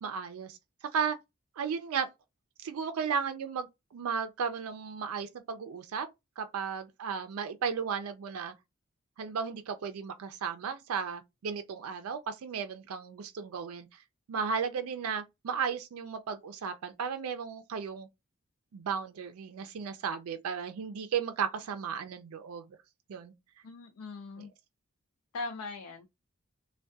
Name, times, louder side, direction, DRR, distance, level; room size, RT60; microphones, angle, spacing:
voice 1, 0.0-0.6 0.9-1.2 1.6-2.1 2.6-6.1 6.4-8.5 9.2-13.9 14.3-18.1 18.7-22.6 23.1-23.3 24.4-24.5, right 6 dB, 75° right, 0.4 m, -34 dB
voice 2, 23.6-24.5 25.3-26.1, left 3 dB, 80° left, 0.4 m, -40 dB
2.2 x 2.2 x 2.6 m
head